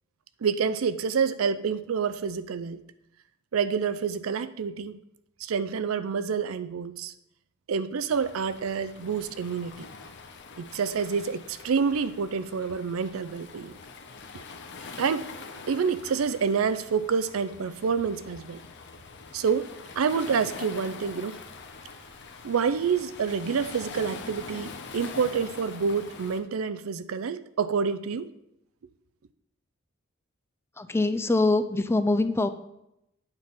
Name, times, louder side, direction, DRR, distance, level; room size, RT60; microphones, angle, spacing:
voice 1, 0.4-2.8 3.5-5.0 5.4-7.1 7.7-9.9 10.6-13.8 15.0-15.3 15.7-18.6 19.3-19.7 20.0-21.4 22.4-28.3, right 6 dB, 90° right, 0.5 m, -28 dB
Waves surf, 8.1-26.4, left 4 dB, 60° left, 0.8 m, -44 dB
voice 2, 30.8-32.5, left 2 dB, 10° left, 0.3 m, -24 dB
8.9 x 3.7 x 5.8 m
head